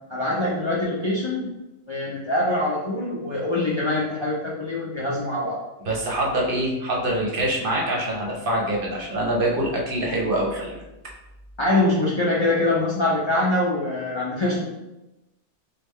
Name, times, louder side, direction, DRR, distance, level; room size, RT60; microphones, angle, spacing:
voice 1, 0.1-1.5 1.9-5.6 11.6-14.6, left 2 dB, 45° left, -6 dB, 0.3 m, -24 dB
voice 2, 5.8-10.8, right 1 dB, 55° right, -2 dB, 0.8 m, -24 dB
3.6 x 2.3 x 3.1 m, 0.97 s
omnidirectional pair, 1.2 m